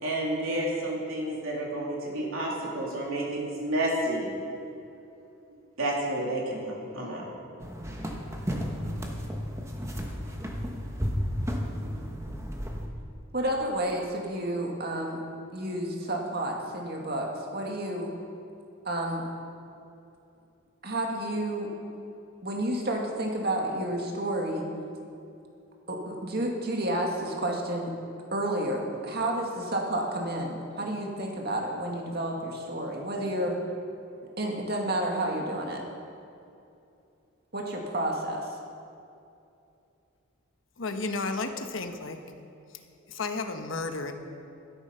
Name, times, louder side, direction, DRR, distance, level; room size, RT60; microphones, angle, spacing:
voice 1, 0.0-4.3 5.8-7.2, right 1 dB, 85° right, -3 dB, 3.3 m, -30 dB
sound 1, 7.6-12.9, equal, 15° right, 1.2 m, -33 dB
voice 2, 13.3-15.2 15.5-18.1 18.9-19.3 20.8-21.7 22.4-24.7 25.9-27.9 28.3-33.6 34.4-35.8 37.5-38.6, right 1 dB, 50° right, 0 dB, 2.0 m, -30 dB
voice 3, 40.8-42.2 42.7-42.8 43.1-44.1, left 3 dB, 70° left, 6 dB, 1.1 m, -32 dB
13.5 x 12.5 x 5.7 m, 2.7 s
head